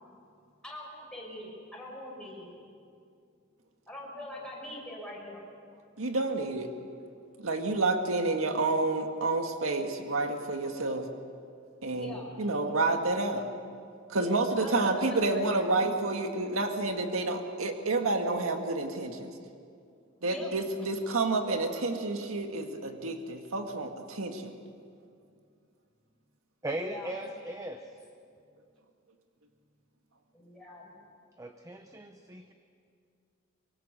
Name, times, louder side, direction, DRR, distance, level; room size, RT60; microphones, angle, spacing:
voice 1, 0.6-2.6 3.9-5.4 11.9-12.4 14.1-15.8 20.2-20.5 26.7-27.2 30.3-30.9, left 1 dB, 5° left, -3 dB, 6.0 m, -43 dB
voice 2, 6.0-6.7 7.4-11.1 11.8-13.5 14.1-19.3 20.2-24.5, right 2 dB, 80° right, 4 dB, 1.8 m, -29 dB
voice 3, 26.6-27.9 31.4-32.5, right 1 dB, 15° right, 6 dB, 0.9 m, -38 dB
25.0 x 23.0 x 6.7 m, 2.4 s
head